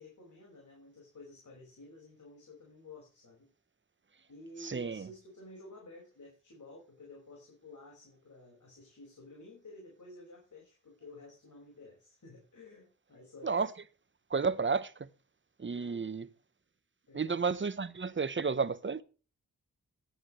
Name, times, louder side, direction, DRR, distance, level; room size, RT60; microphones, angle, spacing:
voice 1, 0.0-3.5 4.3-13.6 15.7-16.2 17.1-17.4, left 2 dB, 65° left, 5.4 m, -52 dB
voice 2, 4.6-5.1 13.4-13.7 14.3-15.1 15.6-16.3 17.1-19.0, right 5 dB, 35° right, 1.0 m, -32 dB
14.5 x 10.0 x 3.2 m
cardioid pair, 60°, 33 cm